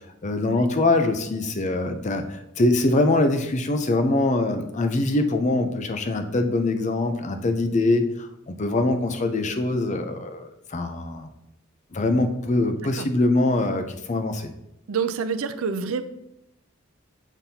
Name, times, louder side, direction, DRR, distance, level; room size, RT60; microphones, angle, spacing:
voice 1, 0.2-11.3 11.9-14.5, left 2 dB, 35° left, 7 dB, 0.5 m, -23 dB
voice 2, 14.9-16.0, right 5 dB, 80° right, 10 dB, 0.5 m, -27 dB
7.0 x 5.8 x 2.8 m, 0.83 s
head